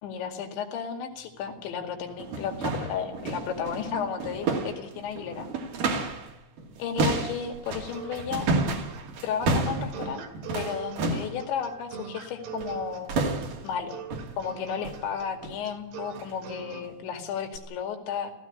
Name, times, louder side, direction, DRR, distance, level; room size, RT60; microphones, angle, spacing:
voice 1, 0.0-5.5 6.8-8.5 9.2-10.3 10.5-13.1 13.6-14.0 14.4-18.3, left 7 dB, 80° left, 5 dB, 4.5 m, -33 dB
sound 1, 1.5-1.6 2.1-6.3 6.6-11.4 12.6-12.8 13.1-13.7 14.1-14.4 14.8-15.1 15.4-15.6 16.1-16.3 16.8-16.9 17.6-17.7, right 3 dB, 50° right, 3.6 m, -31 dB
sound 2, 7.4-16.8, right 9 dB, 70° right, 3.8 m, -42 dB
17.5 x 15.0 x 10.0 m, 0.78 s
omnidirectional pair, 5.2 m